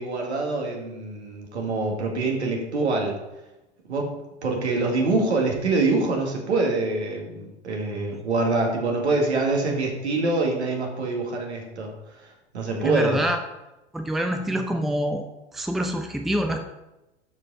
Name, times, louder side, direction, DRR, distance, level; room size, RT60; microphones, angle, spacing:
voice 1, 0.0-3.2 3.9-4.2 4.4-11.9 12.2-13.2, right 3 dB, 75° right, 1 dB, 2.1 m, -25 dB
voice 2, 12.8-13.4 13.9-15.2 15.5-16.6, equal, ahead, 5 dB, 0.6 m, -26 dB
12.0 x 5.2 x 4.0 m, 0.96 s
figure-of-eight pair, 85°, 34 cm